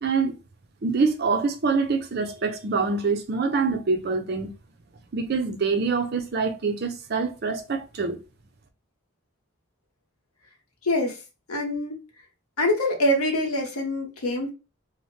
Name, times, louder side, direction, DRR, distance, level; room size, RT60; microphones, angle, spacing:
voice 1, 0.0-0.3 0.8-4.5 5.1-8.2, right 4 dB, 45° right, 0.4 m, -25 dB
voice 2, 10.8-11.2 11.5-11.9 12.6-14.5, left 1 dB, 90° left, 0.9 m, -24 dB
2.9 x 2.1 x 3.1 m
head